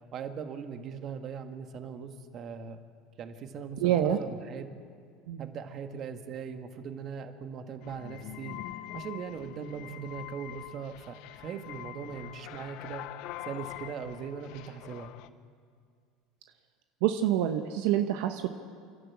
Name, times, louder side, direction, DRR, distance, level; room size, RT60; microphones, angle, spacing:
voice 1, 0.1-2.8 3.2-4.7 5.4-8.6 8.9-13.0 13.4-15.1, right 6 dB, 45° right, 6 dB, 1.8 m, -40 dB
voice 2, 3.8-4.2 5.3-5.4 17.0-18.5, right 11 dB, 75° right, 6 dB, 1.2 m, -26 dB
sound 1, 7.8-15.3, left 15 dB, 70° left, 0.9 m, -44 dB
29.5 x 12.5 x 8.7 m, 2.1 s
supercardioid pair, 120°, 0 cm